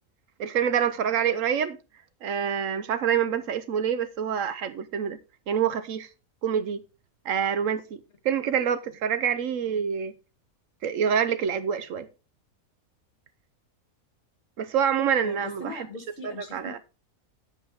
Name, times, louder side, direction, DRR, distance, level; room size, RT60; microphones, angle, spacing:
voice 1, 0.4-1.8 2.2-5.2 5.5-6.1 6.4-6.8 7.2-10.1 10.8-12.1 14.6-15.9 16.2-16.8, right 8 dB, 70° right, 1.0 m, -26 dB
voice 2, 15.2-16.8, left 3 dB, 50° left, 1.8 m, -40 dB
8.5 x 7.9 x 3.5 m
omnidirectional pair, 1.5 m